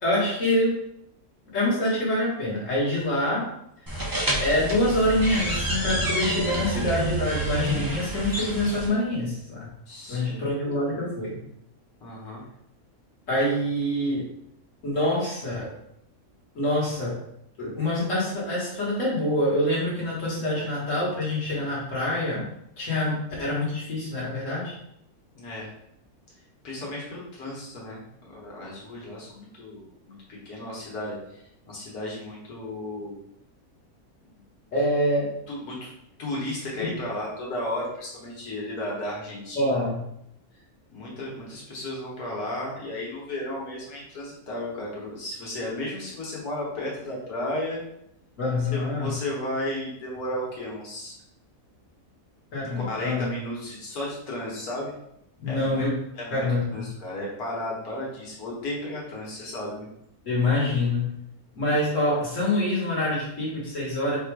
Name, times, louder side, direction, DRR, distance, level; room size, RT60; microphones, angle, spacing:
voice 1, 0.0-0.7 1.5-3.5 4.4-9.7 10.1-11.4 13.3-14.2 14.8-15.7 16.6-17.2 17.6-22.5 22.8-24.7 34.7-35.3 36.8-36.9 39.5-40.0 48.4-49.1 52.5-53.3 55.4-55.9 56.3-56.8 60.3-61.1 61.6-64.2, left 1 dB, 55° left, -5 dB, 1.9 m, -25 dB
sound 1, 3.9-8.9, right 1 dB, 20° right, 0.5 m, -28 dB
voice 2, 9.9-10.4 12.0-12.4 25.4-25.7 26.6-33.2 34.3-34.4 35.5-35.9 36.2-39.9 40.9-47.8 48.7-51.2 52.8-54.9 55.5-55.8 56.1-59.9, left 1 dB, 85° left, -4 dB, 1.9 m, -34 dB
4.5 x 2.5 x 4.6 m, 0.76 s
omnidirectional pair, 1.6 m